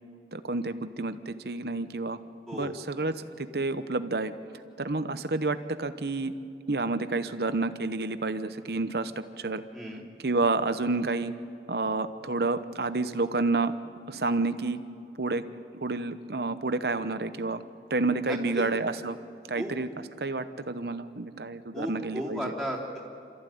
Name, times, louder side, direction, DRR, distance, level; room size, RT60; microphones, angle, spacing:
voice 1, 0.3-2.2 2.5-4.3 4.8-6.3 6.7-9.6 10.2-11.3 11.7-13.7 14.1-14.8 15.2-15.4 15.8-17.6 17.9-19.2 19.5-19.9 20.2-22.5, right 3 dB, 60° right, 11 dB, 0.9 m, -29 dB
voice 2, 9.7-10.0 18.2-18.6 19.6-19.7 21.7-23.0, equal, 5° left, -4 dB, 3.6 m, -34 dB
27.5 x 14.0 x 9.3 m, 2.6 s
head